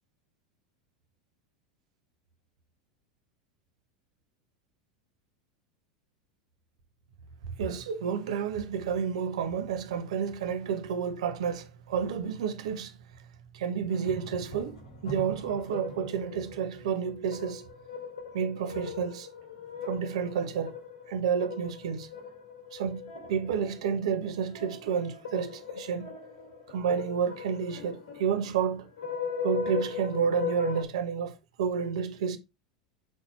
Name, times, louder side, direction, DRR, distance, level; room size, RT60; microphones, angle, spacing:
voice 1, 7.6-13.0 13.5-17.7 18.3-19.3 19.8-20.7 21.1-22.1 22.7-26.2 26.7-28.9 29.4-31.3 31.6-32.4, right 7 dB, 70° right, 1.1 m, -30 dB
sound 1, 13.9-30.8, left 6 dB, 80° left, 3.2 m, -39 dB
7.5 x 4.2 x 4.1 m
hypercardioid pair, 85°, 3 cm